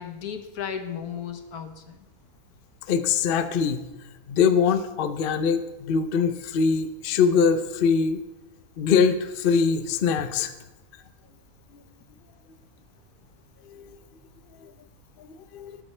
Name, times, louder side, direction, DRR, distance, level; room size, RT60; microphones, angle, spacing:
voice 1, 0.0-2.0, left 7 dB, 80° left, 7 dB, 1.5 m, -35 dB
voice 2, 2.9-3.8 4.3-8.2 8.8-10.5 13.7-13.9 14.6-14.7 15.5-15.7, left 6 dB, 50° left, 10 dB, 0.7 m, -23 dB
18.5 x 8.7 x 3.3 m, 1.0 s
omnidirectional pair, 1.6 m